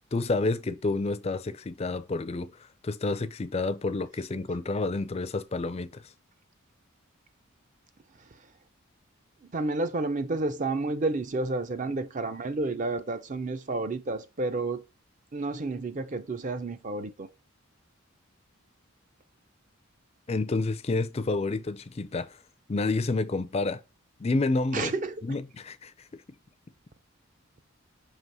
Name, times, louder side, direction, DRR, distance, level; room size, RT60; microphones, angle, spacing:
voice 1, 0.1-2.5 2.8-6.0 20.3-22.4 22.7-23.8 24.2-24.9 25.2-25.9, left 3 dB, 30° left, 0.4 m, -29 dB
voice 2, 9.5-14.8 15.3-17.3 24.7-25.2, right 2 dB, 35° right, 0.5 m, -30 dB
6.1 x 2.9 x 5.4 m
head